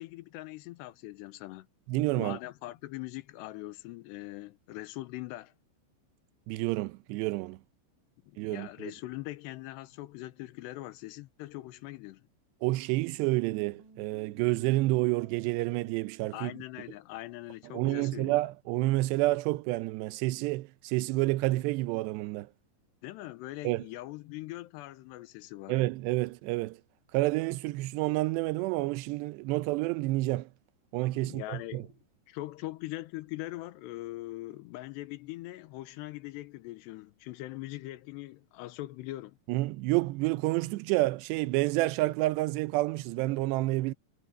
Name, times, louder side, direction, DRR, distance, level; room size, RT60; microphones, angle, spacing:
voice 1, 0.0-1.7 2.1-5.5 8.3-12.3 16.3-18.4 23.0-25.8 31.1-31.9 32.3-39.4, left 17 dB, 85° left, 3.0 m, -42 dB
voice 2, 1.9-2.4 6.5-7.6 8.4-8.9 12.6-16.5 17.7-22.5 23.6-23.9 25.7-26.8 27.1-30.5 30.9-31.8 39.5-43.9, right 19 dB, 85° right, 2.9 m, -29 dB
sound 1, 13.4-17.1 17.5-17.6 18.1-18.2 19.0-19.4, right 7 dB, 55° right, 2.7 m, -58 dB
omnidirectional pair, 4.9 m